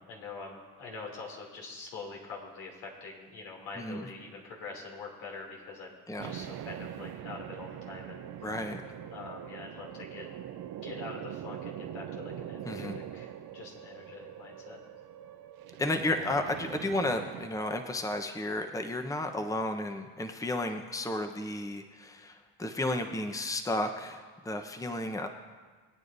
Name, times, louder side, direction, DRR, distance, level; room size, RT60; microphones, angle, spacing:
voice 1, 0.0-8.5 9.1-10.3 10.8-14.8, left 4 dB, 80° left, -3 dB, 3.1 m, -44 dB
voice 2, 3.8-4.1 6.1-6.3 8.4-8.8 12.6-13.0 15.8-25.3, left 1 dB, 5° left, 5 dB, 1.0 m, -33 dB
sound 1, 6.2-17.5, right 10 dB, 50° right, 0.8 m, -43 dB
21.5 x 9.3 x 2.7 m, 1.4 s
hypercardioid pair, 60°, 46 cm